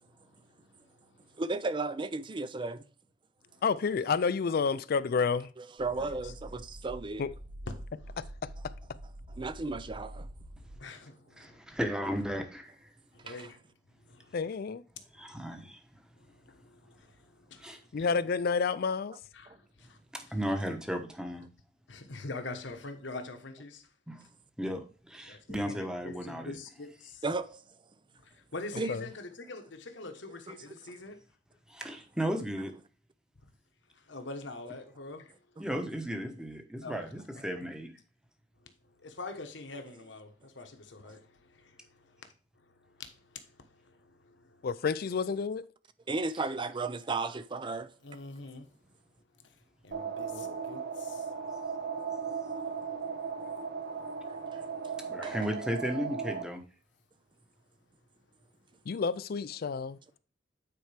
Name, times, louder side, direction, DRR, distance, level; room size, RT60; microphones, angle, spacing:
voice 1, 0.2-1.4 3.4-3.6 6.0-6.3 7.7-8.2 9.3-9.4 10.8-11.6 13.1-13.6 14.0-14.5 15.1-15.5 16.2-17.9 19.3-20.0 20.3-20.4 21.9-23.9 24.2-24.3 25.3-27.2 28.1-31.2 33.4-33.5 33.9-35.6 36.8-37.2 38.6-44.7 48.0-48.7 49.4-51.3, left 3 dB, 70° left, 1.1 m, -46 dB
voice 2, 1.2-2.9 4.7-4.8 5.6-7.2 9.3-10.3 13.3-13.4 19.5-19.6 27.2-27.9 28.8-28.9 30.5-30.6 31.8-31.9 46.1-47.9 54.5-54.6 55.2-55.4, right 3 dB, 25° right, 0.5 m, -35 dB
voice 3, 3.6-5.5 7.2-7.3 8.2-8.3 14.3-14.8 17.9-19.2 28.9-29.0 44.6-45.7 50.3-50.6 58.9-60.0, left 5 dB, 55° left, 0.4 m, -30 dB
sound 1, 5.8-10.8, right 1 dB, 85° right, 2.5 m, -46 dB
voice 4, 11.4-12.9 13.3-13.4 15.2-16.0 17.6-17.8 20.1-21.5 24.1-24.2 24.6-26.6 31.7-32.7 35.6-37.9 46.4-46.5 47.1-47.3 47.7-47.8 55.0-56.6, equal, 5° right, 1.0 m, -35 dB
sound 2, 49.9-56.4, right 6 dB, 55° right, 1.0 m, -37 dB
9.2 x 4.5 x 3.4 m
head